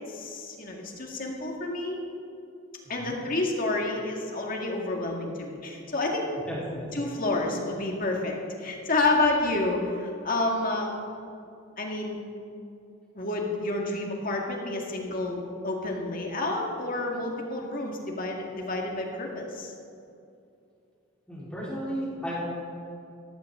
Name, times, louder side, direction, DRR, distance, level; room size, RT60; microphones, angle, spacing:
voice 1, 0.1-2.0 2.9-6.3 6.9-10.9 11.8-12.2 13.1-19.7, left 2 dB, 40° left, 0 dB, 2.0 m, -29 dB
voice 2, 2.8-3.2 6.5-6.9 21.3-22.4, equal, 5° left, -8 dB, 4.2 m, -34 dB
18.0 x 14.0 x 3.8 m, 2.6 s
head